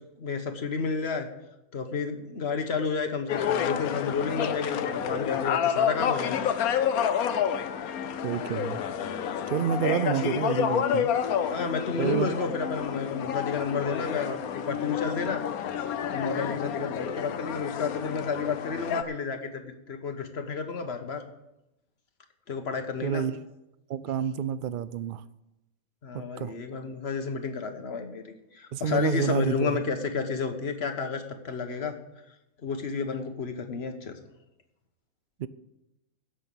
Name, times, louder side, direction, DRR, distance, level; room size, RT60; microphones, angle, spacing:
voice 1, 0.2-1.3 1.7-6.5 11.5-15.4 16.1-21.2 22.5-23.2 26.0-31.9 32.6-34.1, left 5 dB, 50° left, 6 dB, 1.5 m, -31 dB
sound 1, 3.3-19.0, left 8 dB, 85° left, 1.2 m, -29 dB
voice 2, 8.2-8.8 9.5-11.1 12.0-12.3 23.0-23.4 23.9-25.2 26.1-26.5 28.7-29.9 35.4-35.5, right 8 dB, 65° right, 16 dB, 0.5 m, -29 dB
16.0 x 6.4 x 7.0 m, 0.91 s
omnidirectional pair, 1.5 m